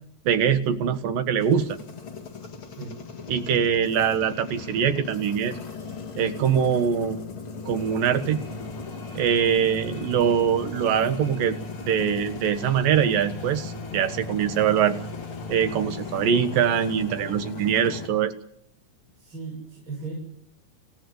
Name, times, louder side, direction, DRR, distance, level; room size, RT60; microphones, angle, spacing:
voice 1, 0.3-1.8 3.3-5.6 6.2-7.2 7.7-8.4 9.1-11.6 11.8-15.0 15.5-18.3, right 8 dB, 80° right, 10 dB, 3.1 m, -23 dB
sound 1, 1.4-18.1, left 4 dB, 40° left, 2.8 m, -37 dB
sound 2, 7.6-17.4, left 4 dB, 75° left, 4.9 m, -46 dB
voice 2, 19.2-20.2, right 4 dB, 35° right, -3 dB, 7.6 m, -36 dB
26.5 x 16.5 x 7.9 m, 0.69 s
omnidirectional pair, 3.9 m